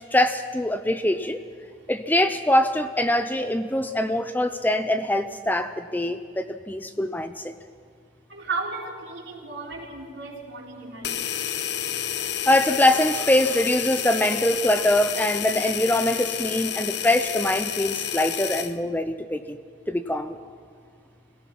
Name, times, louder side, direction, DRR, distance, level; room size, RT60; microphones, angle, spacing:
voice 1, 0.0-1.4 1.9-7.5 12.5-19.6 19.9-20.3, left 1 dB, 10° left, 9 dB, 0.5 m, -23 dB
voice 2, 8.3-11.4, right 3 dB, 70° right, -2 dB, 3.9 m, -34 dB
sound 1, 11.0-18.7, left 9 dB, 60° left, 0.7 m, -30 dB
26.0 x 17.5 x 6.0 m, 2.1 s
head